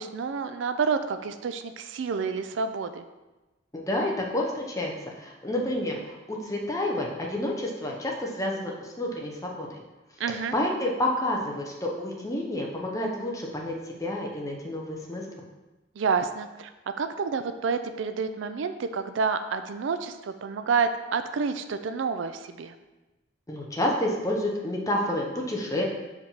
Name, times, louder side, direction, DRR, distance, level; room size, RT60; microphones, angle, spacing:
voice 1, 0.0-3.0 10.2-10.5 16.0-16.7 17.0-22.8, right 5 dB, 75° right, 9 dB, 0.4 m, -29 dB
voice 2, 3.7-4.9 5.2-9.8 10.5-15.4 23.5-25.8, left 1 dB, 15° left, -1 dB, 0.8 m, -29 dB
4.9 x 3.5 x 5.5 m, 1.1 s
head